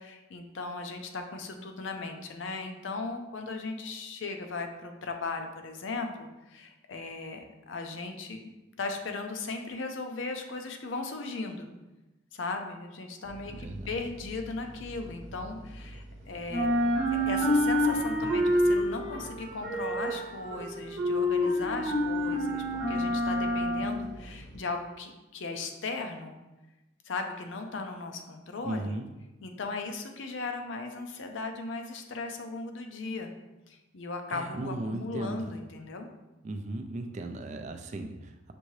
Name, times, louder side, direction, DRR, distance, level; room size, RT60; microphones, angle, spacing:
voice 1, 0.0-8.5 8.8-11.7 12.3-16.7 17.1-26.4 27.0-29.0 29.4-33.3 33.7-36.1, left 3 dB, 80° left, 5 dB, 0.5 m, -37 dB
sound 1, 13.3-16.1 16.4-24.6, equal, 70° right, 0.8 m, -28 dB
voice 2, 13.5-13.9 28.6-29.1 34.3-35.5 36.4-38.5, right 2 dB, 40° right, 6 dB, 0.4 m, -36 dB
6.0 x 2.7 x 3.1 m, 1.0 s
head